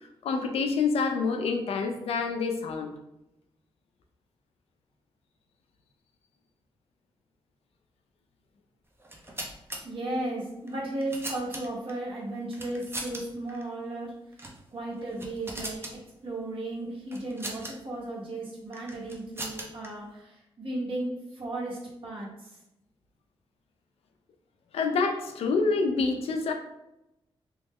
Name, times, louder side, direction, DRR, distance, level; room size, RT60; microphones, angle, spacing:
voice 1, 0.2-2.9 24.7-26.5, left 4 dB, 85° left, 5 dB, 0.4 m, -27 dB
sound 1, 9.0-9.8 10.7-11.9 12.5-13.2 13.5-13.6 14.3-14.6 15.0-15.9 17.1-17.7 18.7-19.9, right 2 dB, 25° right, 0.6 m, -39 dB
voice 2, 9.8-14.1 14.7-15.8 16.2-22.5, right 2 dB, 65° right, -5 dB, 1.3 m, -35 dB
2.9 x 2.1 x 3.5 m, 0.87 s
cardioid pair, 70°, 10 cm